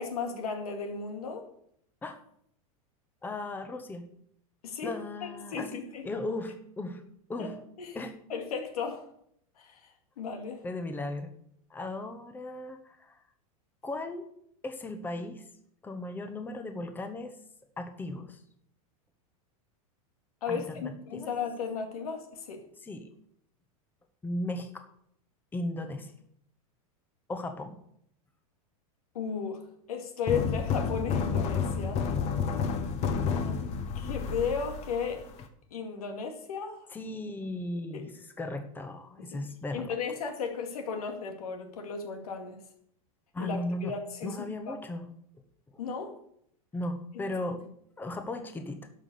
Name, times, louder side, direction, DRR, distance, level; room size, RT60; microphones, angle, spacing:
voice 1, 0.0-1.5 4.6-6.1 7.4-7.5 7.8-8.0 8.3-9.1 9.6-10.6 20.4-22.6 29.1-32.1 33.2-33.6 33.9-35.3 35.7-36.9 37.9-38.1 39.3-39.4 39.7-42.6 43.4-44.8 45.8-46.2 47.1-47.3, left 5 dB, 90° left, 4 dB, 2.3 m, -35 dB
voice 2, 3.2-4.1 4.8-5.8 6.0-7.0 7.3-7.5 7.9-8.2 10.6-11.3 11.7-13.2 13.8-14.3 14.6-15.4 15.8-17.3 17.8-18.4 20.5-21.3 22.8-23.1 24.2-24.9 25.5-26.1 27.3-27.8 36.9-38.1 38.4-39.9 43.3-43.9 44.2-45.1 46.7-47.6 48.0-48.9, left 2 dB, 10° left, 7 dB, 1.0 m, -36 dB
sound 1, 30.3-35.4, left 6 dB, 35° left, 1.2 m, -30 dB
12.0 x 6.0 x 6.9 m, 0.70 s
supercardioid pair, 140°, 19 cm